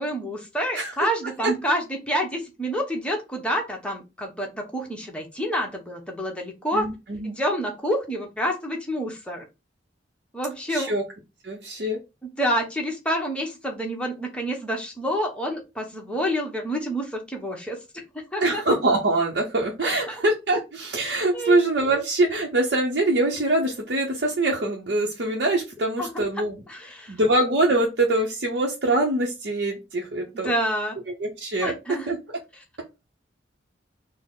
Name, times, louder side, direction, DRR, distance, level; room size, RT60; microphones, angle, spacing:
voice 1, 0.0-6.9 7.2-9.4 10.3-10.9 12.2-17.8 18.1-18.6 19.8-20.2 21.3-21.6 26.0-26.1 26.7-27.1 30.3-31.0 31.6-32.1 32.5-32.6, equal, 5° left, 1 dB, 0.8 m, -28 dB
voice 2, 6.7-7.4 10.7-11.0 11.4-12.0 18.4-26.6 27.1-30.5 31.2-31.8 32.1-32.2, right 2 dB, 60° right, -1 dB, 0.7 m, -24 dB
4.0 x 2.0 x 3.6 m, 0.26 s
head